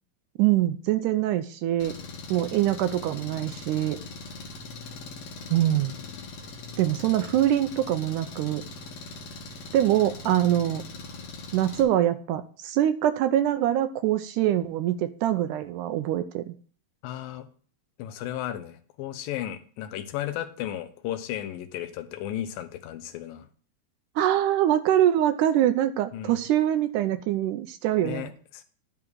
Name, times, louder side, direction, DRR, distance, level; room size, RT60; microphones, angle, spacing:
voice 1, 0.4-2.0 2.3-4.0 5.5-5.9 6.8-8.6 9.7-10.8 11.5-16.5 24.2-28.3, right 12 dB, 80° right, 10 dB, 1.8 m, -24 dB
Engine, 1.8-11.8, left 3 dB, 60° left, 2.3 m, -41 dB
voice 2, 17.0-17.5 18.0-23.5 26.1-26.4 28.0-28.6, left 12 dB, 85° left, 10 dB, 2.5 m, -34 dB
11.0 x 3.7 x 6.2 m, 0.44 s
omnidirectional pair, 4.0 m